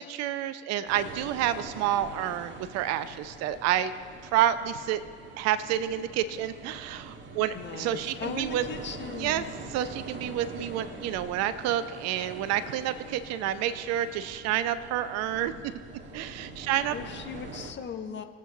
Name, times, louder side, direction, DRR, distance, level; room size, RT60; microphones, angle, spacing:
voice 1, 0.0-3.9 4.2-5.0 5.4-8.6 9.2-9.4 9.7-15.5 16.1-17.0, right 11 dB, 55° right, 12 dB, 0.7 m, -29 dB
sound 1, 0.9-17.7, right 3 dB, 35° right, 1.7 m, -44 dB
voice 2, 7.5-9.5 16.9-18.2, left 6 dB, 35° left, 7 dB, 0.9 m, -38 dB
22.0 x 8.2 x 3.0 m, 2.1 s
figure-of-eight pair, 60°, 31 cm